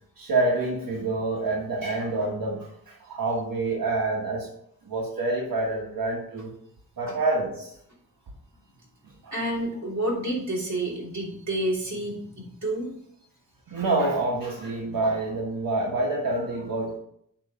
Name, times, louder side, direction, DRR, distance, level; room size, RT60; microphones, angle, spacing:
voice 1, 0.2-4.5 4.8-6.5 7.0-7.7 9.2-9.3 13.7-17.0, right 2 dB, 90° right, -3 dB, 1.2 m, -27 dB
voice 2, 9.3-12.9 16.3-16.7, right 1 dB, 55° right, -3 dB, 2.9 m, -30 dB
8.7 x 3.1 x 5.5 m, 0.70 s
wide cardioid pair, 90°, 33 cm